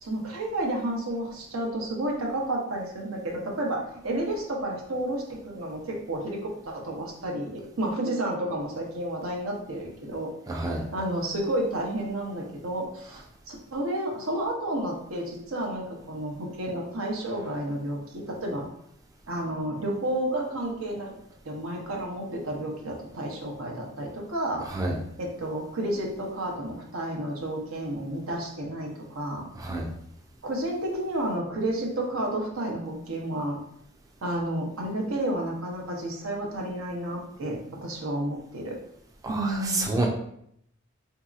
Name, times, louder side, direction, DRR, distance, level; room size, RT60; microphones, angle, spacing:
voice 1, 0.0-10.3 10.6-18.6 19.3-21.1 21.4-24.6 25.2-29.5 30.4-33.6 34.2-38.8 39.3-39.9, right 1 dB, 90° right, -1 dB, 0.8 m, -31 dB
voice 2, 10.5-10.8 24.7-24.9 29.6-29.9 39.2-40.1, right 2 dB, 15° right, 0 dB, 0.4 m, -28 dB
3.9 x 2.8 x 2.4 m, 0.70 s
head